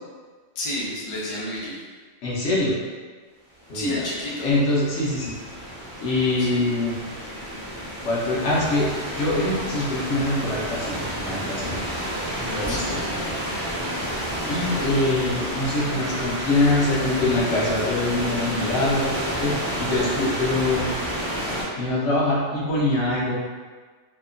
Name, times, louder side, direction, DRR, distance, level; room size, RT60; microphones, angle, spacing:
voice 1, 0.5-1.8 3.7-4.5 6.4-6.7 12.7-13.2, left 1 dB, 40° left, -7 dB, 0.4 m, -31 dB
voice 2, 2.2-2.8 3.7-4.0 4.4-5.3 6.0-7.0 8.0-8.9 9.1-11.8 12.5-13.0 14.5-20.9 21.8-23.4, left 2 dB, 65° left, -6 dB, 1.0 m, -24 dB
sound 1, 3.6-21.6, equal, 10° right, 0.6 m, -30 dB
2.8 x 2.2 x 2.4 m, 1.5 s
omnidirectional pair, 1.3 m